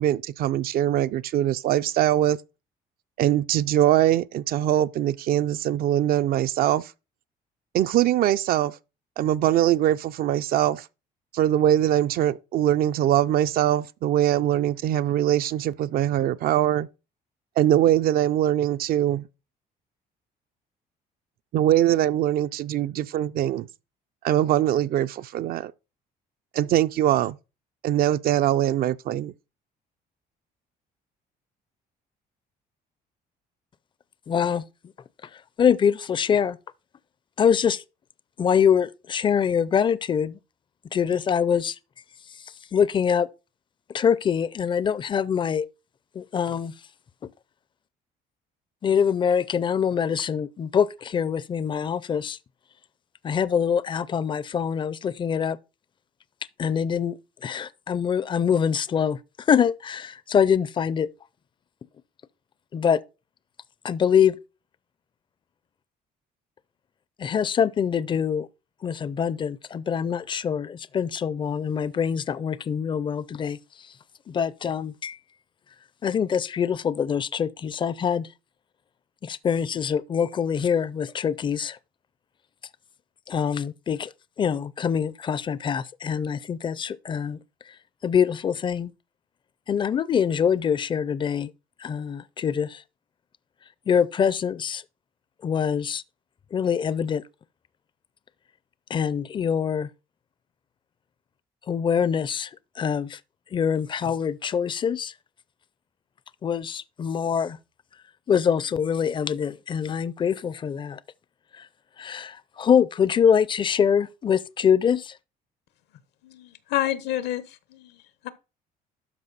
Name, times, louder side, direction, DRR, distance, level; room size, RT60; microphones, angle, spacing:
voice 1, 0.0-2.4 3.2-6.9 7.7-8.8 9.2-10.9 11.3-16.9 17.6-19.3 21.5-23.7 24.2-25.7 26.5-27.4 27.8-29.3, right 12 dB, 65° right, 0.5 m, -22 dB
voice 2, 34.3-34.6 35.2-35.3 35.6-36.6 37.4-37.8 38.4-40.4 40.9-41.8 42.7-43.3 43.9-45.7 46.1-46.7 47.2-47.3 48.8-52.4 53.2-55.6 56.6-61.1 62.7-63.0 63.8-64.4 67.2-68.5 68.8-73.6 74.3-75.2 76.0-78.3 79.2-81.8 83.3-84.1 84.4-87.4 88.0-88.9 89.7-91.5 91.8-92.8 93.9-94.8 95.4-96.0 96.5-97.2 98.9-99.9 101.7-102.5 102.8-103.2 103.5-105.1 106.4-107.6 108.3-111.0 111.6-111.7 112.0-115.2, left 7 dB, 30° left, 0.4 m, -24 dB
voice 3, 116.2-117.4 117.7-118.0 118.2-118.3, left 13 dB, 85° left, 1.0 m, -28 dB
12.0 x 4.7 x 4.0 m
cardioid pair, 110°, 17 cm